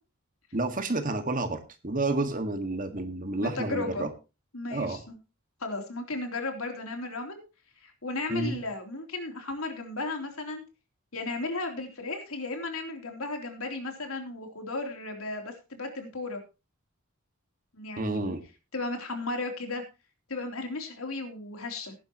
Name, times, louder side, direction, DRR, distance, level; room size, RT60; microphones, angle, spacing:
voice 1, 0.5-4.1 4.7-5.0 8.3-8.6 18.0-18.4, right 2 dB, 40° right, 7 dB, 1.8 m, -30 dB
voice 2, 3.4-4.1 4.5-5.2 5.6-7.4 7.8-10.6 11.1-16.4 17.7-18.3 18.7-19.8 20.3-21.9, left 2 dB, 85° left, 4 dB, 3.4 m, -35 dB
17.5 x 10.5 x 3.0 m, 0.30 s
head